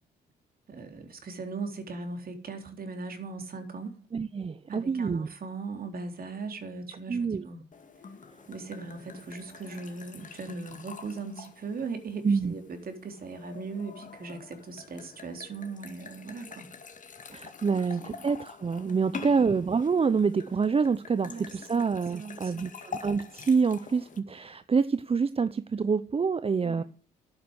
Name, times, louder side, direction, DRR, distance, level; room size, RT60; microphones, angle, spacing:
voice 1, 0.7-4.0 4.7-7.6 8.5-16.7 17.7-18.3 18.8-19.4 21.3-22.7 26.6-26.8, right 4 dB, 50° right, 5 dB, 3.7 m, -39 dB
voice 2, 4.1-5.3 7.1-7.4 12.2-12.5 17.3-26.8, right 5 dB, 30° right, 14 dB, 0.8 m, -27 dB
sound 1, 7.7-24.2, left 5 dB, 40° left, 2.1 m, -46 dB
11.0 x 9.0 x 8.0 m, 0.43 s
supercardioid pair, 60°, 20 cm